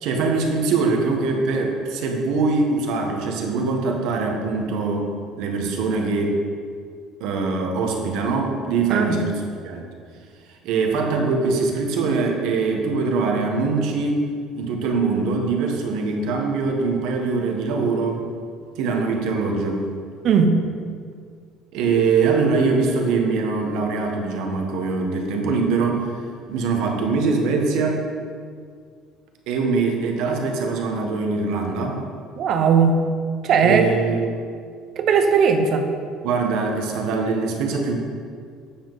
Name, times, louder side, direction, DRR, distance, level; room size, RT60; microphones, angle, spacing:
voice 1, 0.0-5.1 5.4-6.4 7.2-9.8 10.6-14.2 14.5-18.2 18.7-19.8 21.7-26.1 26.5-28.1 29.5-32.0 33.6-34.3 36.2-38.0, right 4 dB, 65° right, 2 dB, 1.2 m, -22 dB
voice 2, 32.4-33.0 33.4-33.9 35.0-35.9, right 6 dB, 45° right, 6 dB, 0.7 m, -17 dB
8.6 x 7.0 x 4.0 m, 2.1 s
cardioid pair, 155°, 0 cm